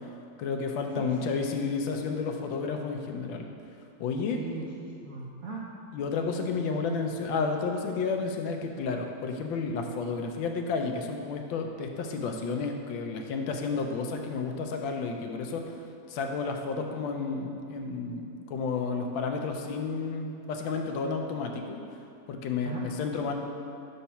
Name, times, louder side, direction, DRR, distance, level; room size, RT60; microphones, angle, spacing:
voice 1, 0.4-3.5 4.0-4.4 5.9-15.6 16.1-21.8 22.3-23.3, left 4 dB, 85° left, 4 dB, 1.4 m, -31 dB
voice 2, 0.9-1.3 4.3-5.7 22.6-22.9, right 4 dB, 75° right, -3 dB, 0.7 m, -39 dB
5.7 x 4.1 x 5.5 m, 2.5 s
omnidirectional pair, 2.1 m